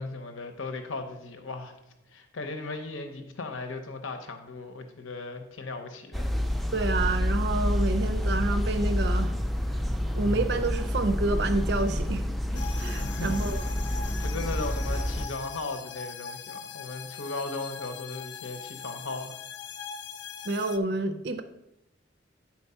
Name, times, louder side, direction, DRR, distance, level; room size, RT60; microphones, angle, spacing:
voice 1, 0.0-1.7 2.1-6.3 12.9-13.6 14.2-19.4, left 3 dB, 90° left, 6 dB, 0.8 m, -37 dB
sound 1, 6.1-15.3, equal, ahead, 0.4 m, -28 dB
voice 2, 6.7-9.3 9.7-9.8 10.1-12.2 12.5-13.7 20.4-21.4, right 2 dB, 60° right, 9 dB, 0.5 m, -29 dB
sound 2, 12.5-20.8, left 7 dB, 60° left, 0.4 m, -41 dB
9.5 x 4.4 x 5.6 m, 0.91 s
head